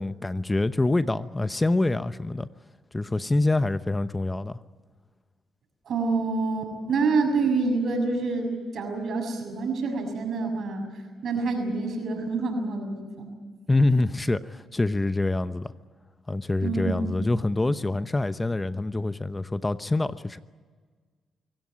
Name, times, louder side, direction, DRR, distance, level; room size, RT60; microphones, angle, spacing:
voice 1, 0.0-2.5 2.9-4.6 13.7-15.7 16.3-20.4, left 2 dB, 20° left, 13 dB, 0.9 m, -25 dB
voice 2, 5.9-8.5 8.7-10.9 11.2-13.3 16.6-17.3, right 3 dB, 65° right, 5 dB, 6.5 m, -27 dB
25.0 x 17.0 x 9.6 m, 1.5 s
supercardioid pair, 60°, 0 cm